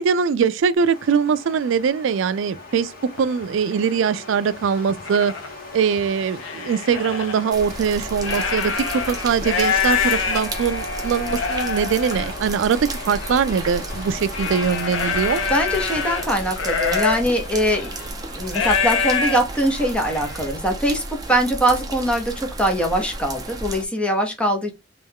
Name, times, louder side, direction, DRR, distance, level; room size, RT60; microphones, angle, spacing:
voice 1, 0.0-5.3 5.7-15.4, right 6 dB, 70° right, 0.3 m, -22 dB
sound 1, 0.8-18.5, left 2 dB, 50° left, 1.7 m, -39 dB
sound 2, 2.5-2.6 3.2-3.4 4.1-4.2 4.6-5.5 6.0-7.4 8.0-20.5, left 5 dB, 85° left, 0.8 m, -26 dB
sound 3, 7.5-23.8, right 2 dB, 20° right, 0.8 m, -33 dB
voice 2, 15.5-24.7, equal, 5° left, 0.9 m, -22 dB
3.4 x 3.1 x 3.5 m
head